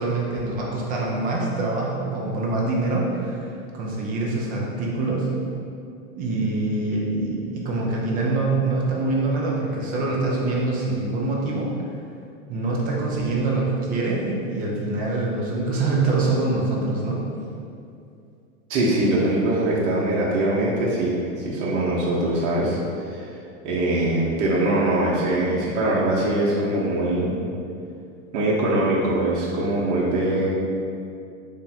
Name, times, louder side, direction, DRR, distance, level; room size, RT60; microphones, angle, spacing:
voice 1, 0.0-5.3 6.2-11.7 12.5-17.2, right 2 dB, 20° right, -3 dB, 0.4 m, -25 dB
voice 2, 18.7-22.8 23.0-23.2 23.6-27.3 28.3-30.5, right 1 dB, 55° right, -6 dB, 0.8 m, -22 dB
3.5 x 2.2 x 4.1 m, 2.5 s
hypercardioid pair, 120°, 42 cm